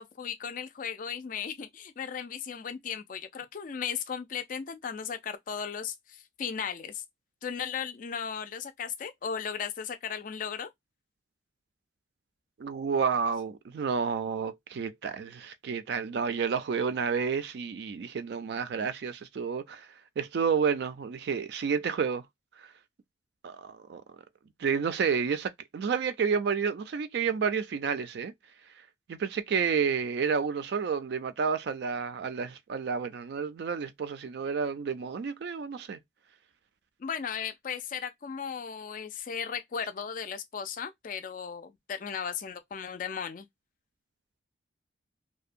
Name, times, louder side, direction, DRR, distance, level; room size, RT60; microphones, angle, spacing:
voice 1, 0.0-7.0 7.4-10.7 37.0-43.5, left 7 dB, 45° left, 0.3 m, -36 dB
voice 2, 12.6-19.9 20.2-22.2 23.4-24.0 24.6-28.3 29.1-36.0, right 6 dB, 60° right, 0.3 m, -30 dB
2.6 x 2.1 x 2.5 m
head